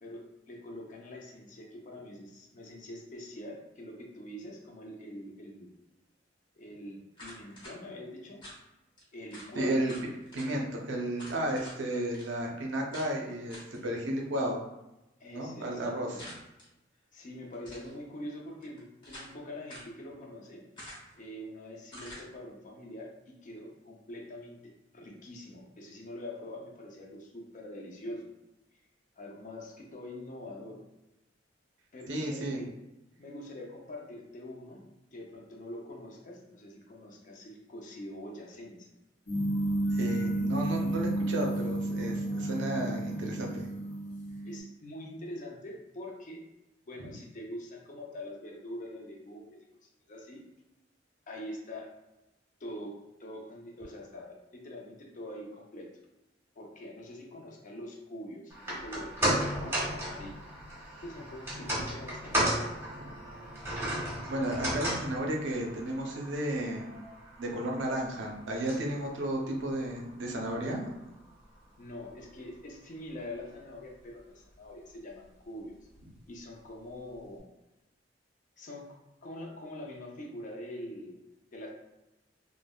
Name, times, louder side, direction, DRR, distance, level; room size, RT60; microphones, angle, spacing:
voice 1, 0.0-5.8 6.6-8.4 9.1-9.9 15.2-16.2 17.1-20.6 21.2-28.3 29.2-30.8 31.9-32.7 33.2-34.8 35.1-38.9 44.4-46.4 46.9-50.4 51.3-51.9 52.6-55.9 56.6-60.4 61.0-62.8 71.8-75.8 76.3-77.5 78.6-81.2 81.5-81.7, left 1 dB, 45° left, -1 dB, 0.5 m, -44 dB
sound 1, 7.1-7.7 8.4-8.6 9.0-9.1 9.3-9.5 9.8-10.5 11.2-11.8 12.1-12.3 12.9-13.1 13.5-13.8 16.2-16.7 17.5-17.9 18.6-19.3 19.7-19.9 20.8-21.2 21.9-22.3, equal, 25° left, 1.0 m, -47 dB
voice 2, 9.6-9.9 10.3-14.6 15.3-16.1 32.1-32.6 39.9-43.7 64.3-67.0 67.4-70.8, right 1 dB, 75° right, 0 dB, 0.5 m, -33 dB
sound 2, 39.3-44.6, right 1 dB, 80° left, 1.0 m, -31 dB
sound 3, 58.5-70.9 71.2-71.3, equal, 15° right, 0.8 m, -35 dB
3.3 x 2.0 x 2.2 m, 0.95 s
head